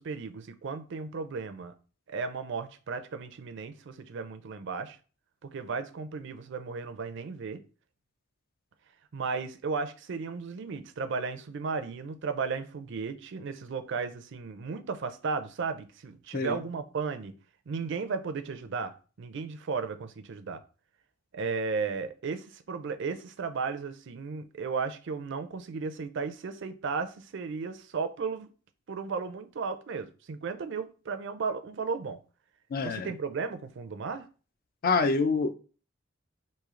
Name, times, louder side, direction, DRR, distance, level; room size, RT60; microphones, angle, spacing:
voice 1, 0.0-1.7 2.1-5.0 5.4-7.6 9.1-17.4 17.7-18.9 19.2-20.6 21.3-28.5 28.9-32.2 32.8-34.3, right 5 dB, 65° right, 0.5 m, -35 dB
voice 2, 32.7-33.1 34.8-35.5, left 4 dB, 50° left, 0.4 m, -26 dB
3.1 x 2.7 x 3.6 m
head